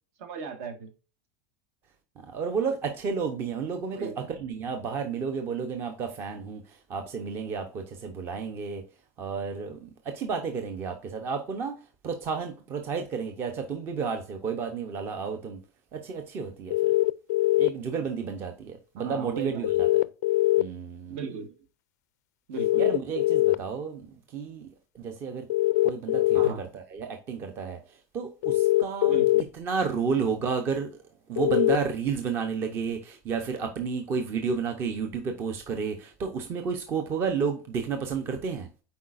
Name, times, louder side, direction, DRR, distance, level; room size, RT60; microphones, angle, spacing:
voice 1, 0.2-0.9 3.9-4.3 19.0-19.7 21.1-21.5 22.5-22.9 26.3-26.7 29.0-29.4, right 5 dB, 60° right, 1.5 m, -37 dB
voice 2, 2.3-8.8 9.2-11.7 12.0-15.6 15.9-16.9 17.6-20.0 20.6-21.2 22.8-24.7 24.9-25.5 25.8-27.8 28.1-29.2 29.6-31.0 31.3-38.7, right 5 dB, 25° right, 0.7 m, -31 dB
sound 1, 16.7-17.7 19.6-20.6 22.6-23.5 25.5-26.5 28.4-29.4 31.4-31.8, left 17 dB, 85° left, 0.4 m, -22 dB
8.0 x 4.7 x 2.5 m
supercardioid pair, 175°, 9 cm